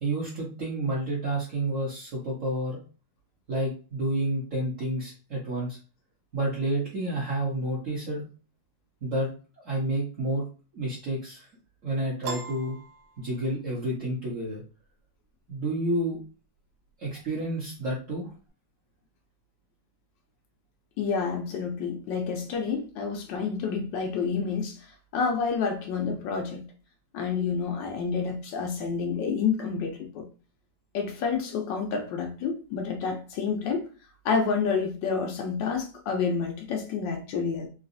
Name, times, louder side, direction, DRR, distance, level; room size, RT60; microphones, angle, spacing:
voice 1, 0.0-2.8 3.5-5.8 6.3-8.2 9.0-9.3 9.6-10.4 10.7-11.5 11.8-12.8 13.2-14.6 15.5-16.2 17.0-18.3, right 1 dB, 50° right, 1.2 m, -29 dB
Piano, 12.2-13.8, right 4 dB, 80° right, 1.3 m, -39 dB
voice 2, 21.0-24.8 25.1-26.6 27.1-30.2 30.9-33.8 34.2-37.7, left 5 dB, 85° left, 1.4 m, -29 dB
3.9 x 2.3 x 2.6 m
omnidirectional pair, 1.9 m